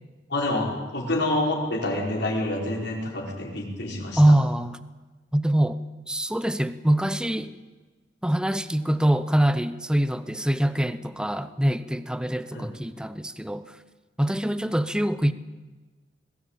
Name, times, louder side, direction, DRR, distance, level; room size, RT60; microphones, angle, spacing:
voice 1, 0.3-4.2 12.5-12.6, left 1 dB, 65° left, -1 dB, 4.8 m, -27 dB
voice 2, 4.2-4.8 5.3-5.8 6.1-7.5 8.2-13.8 14.2-15.3, right 1 dB, 5° right, 13 dB, 0.7 m, -24 dB
21.5 x 15.5 x 8.8 m, 1.3 s
head